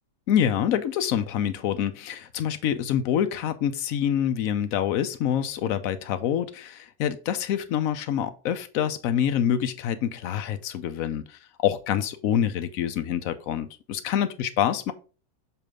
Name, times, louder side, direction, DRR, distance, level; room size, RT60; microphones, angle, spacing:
voice 1, 0.3-14.9, left 9 dB, 60° left, 0.9 m, -26 dB
7.0 x 3.3 x 4.7 m
omnidirectional pair, 1.9 m